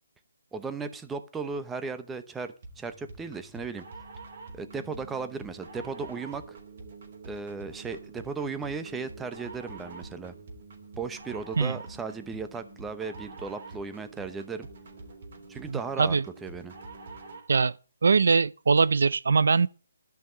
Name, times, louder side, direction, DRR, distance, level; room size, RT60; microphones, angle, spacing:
voice 1, 0.5-3.8 4.5-6.6 7.2-10.3 11.0-14.7 15.5-16.7, right 4 dB, 5° right, 0.7 m, -36 dB
sound 1, 2.6-17.6, right 3 dB, 45° right, 3.3 m, -46 dB
voice 2, 15.7-16.2 17.5-17.7 18.0-19.7, right 4 dB, 70° right, 0.5 m, -22 dB
12.5 x 5.8 x 8.8 m
hypercardioid pair, 170°, 0 cm